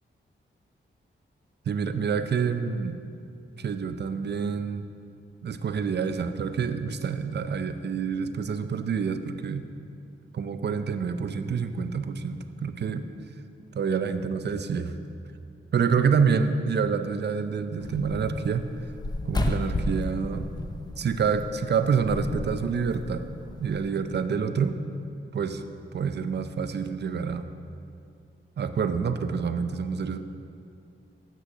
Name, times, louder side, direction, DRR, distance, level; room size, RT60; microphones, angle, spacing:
voice 1, 1.7-3.0 3.6-4.8 5.4-9.7 10.3-13.0 13.7-15.0 15.7-18.6 19.3-20.5 21.0-23.2 23.6-24.8 25.3-25.6 25.9-27.5 28.6-30.2, right 6 dB, 55° right, 9 dB, 0.5 m, -27 dB
sound 1, 17.8-23.8, left 1 dB, 20° left, 0.7 m, -33 dB
7.6 x 6.5 x 6.3 m, 2.5 s
wide cardioid pair, 90°, 21 cm